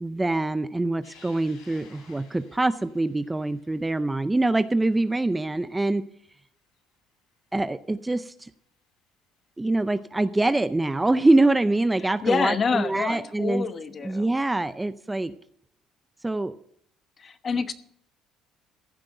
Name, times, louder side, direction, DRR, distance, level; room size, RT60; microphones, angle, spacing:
voice 1, 0.0-6.1 7.5-8.5 9.6-13.7 14.0-15.3 16.2-16.5, right 2 dB, 10° right, 13 dB, 0.5 m, -24 dB
sound 1, 1.0-7.7 8.2-8.3 9.5-9.6 11.8-11.9 13.2-13.5, left 5 dB, 75° left, 5.1 m, -57 dB
voice 2, 12.2-14.3 17.2-17.7, left 5 dB, 35° left, 11 dB, 1.0 m, -27 dB
15.0 x 5.8 x 7.8 m, 0.69 s
cardioid pair, 105°, 0 cm